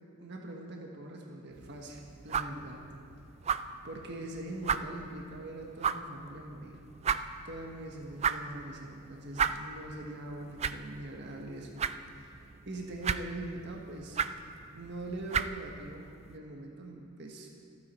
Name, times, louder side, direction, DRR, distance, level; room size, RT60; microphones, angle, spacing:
voice 1, 0.2-2.8 3.8-6.8 7.4-11.7 12.2-14.2 14.7-17.6, right 2 dB, 50° right, 0 dB, 1.4 m, -42 dB
sound 1, 1.5-16.4, right 6 dB, 30° right, 0.3 m, -37 dB
26.5 x 9.7 x 4.4 m, 2.6 s
head